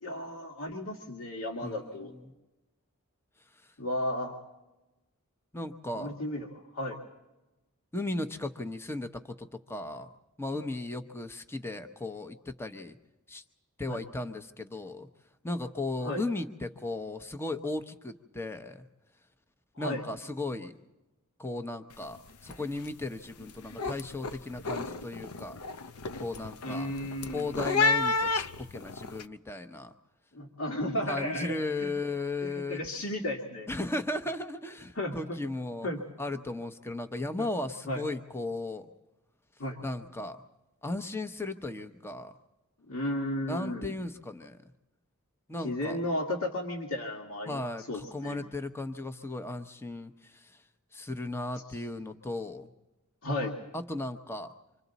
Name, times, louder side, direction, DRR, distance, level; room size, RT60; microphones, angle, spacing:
voice 1, 0.0-2.1 3.8-4.4 5.9-6.5 6.7-7.0 13.9-14.0 16.0-16.2 19.8-20.0 26.6-27.5 30.3-31.9 32.4-33.7 35.0-35.4 35.8-36.0 37.9-38.0 39.6-39.8 42.9-43.9 45.6-47.6 47.9-48.4 53.2-53.6, left 1 dB, 70° left, 0 dB, 2.0 m, -34 dB
voice 2, 1.6-2.3 3.6-3.7 5.5-6.2 7.9-10.1 10.4-13.0 13.3-13.4 13.8-15.1 15.4-18.9 19.8-20.8 21.4-25.6 26.2-26.9 27.3-29.9 31.1-32.8 33.7-35.9 36.2-38.9 39.8-40.4 40.8-42.3 43.5-44.6 45.5-46.0 47.5-50.6 50.9-52.7 53.7-54.5, left 2 dB, 10° left, 8 dB, 0.8 m, -36 dB
sound 1, 21.9-22.2 22.4-22.9 23.3-29.2, left 4 dB, 90° left, 0.7 m, -31 dB
28.5 x 25.5 x 4.1 m, 1.0 s
head